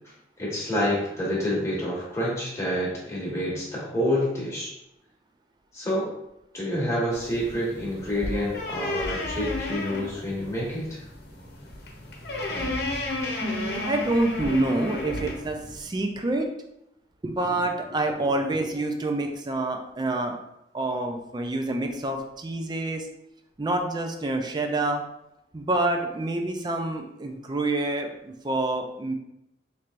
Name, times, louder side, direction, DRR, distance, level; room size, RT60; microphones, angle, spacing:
voice 1, 0.4-4.7 5.7-6.1 6.5-11.0 12.5-12.8, equal, 15° left, -6 dB, 1.3 m, -28 dB
sound 1, 7.1-15.8, left 2 dB, 60° left, 0.8 m, -33 dB
voice 2, 13.4-16.5 17.2-20.4 20.7-23.1 23.6-25.0 25.5-29.1, right 2 dB, 25° right, 4 dB, 0.4 m, -27 dB
4.4 x 3.3 x 2.5 m, 0.84 s
head